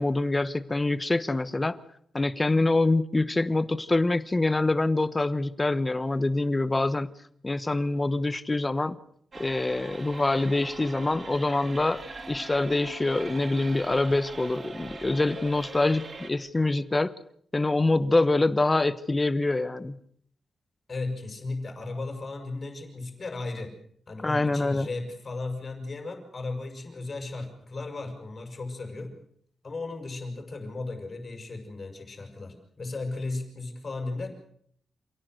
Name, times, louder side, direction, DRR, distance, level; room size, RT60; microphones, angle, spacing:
voice 1, 0.0-1.8 2.1-7.1 7.4-9.0 9.4-17.1 17.5-20.0 24.2-24.9, left 2 dB, 15° left, 15 dB, 1.0 m, -25 dB
sound 1, 9.3-16.3, right 3 dB, 35° right, 2.5 m, -42 dB
voice 2, 20.9-23.7 24.1-29.1 29.6-34.3, left 3 dB, 30° left, 4 dB, 6.2 m, -35 dB
28.0 x 17.5 x 7.9 m, 0.65 s
wide cardioid pair, 175°, 0 cm